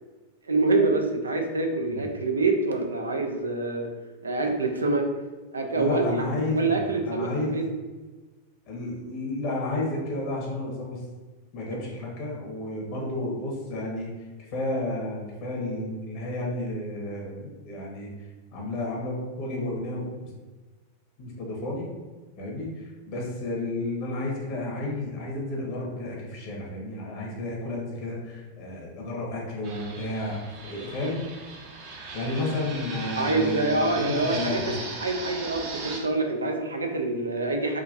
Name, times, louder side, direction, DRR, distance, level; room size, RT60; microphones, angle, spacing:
voice 1, 0.5-3.9 4.2-5.1 5.5-6.1 6.6-7.6 33.2-34.6 35.0-37.8, right 3 dB, 75° right, 3 dB, 0.5 m, -26 dB
voice 2, 5.7-7.6 8.7-11.0 11.5-14.1 14.4-18.1 18.5-20.3 21.2-21.9 22.3-30.4 30.6-31.2 32.1-34.7, left 2 dB, 45° left, -2 dB, 1.3 m, -32 dB
Fixed-wing aircraft airplane, 29.6-36.0, right 3 dB, 45° right, 0.8 m, -38 dB
4.8 x 2.8 x 2.6 m, 1.3 s
figure-of-eight pair, 90°, 0 cm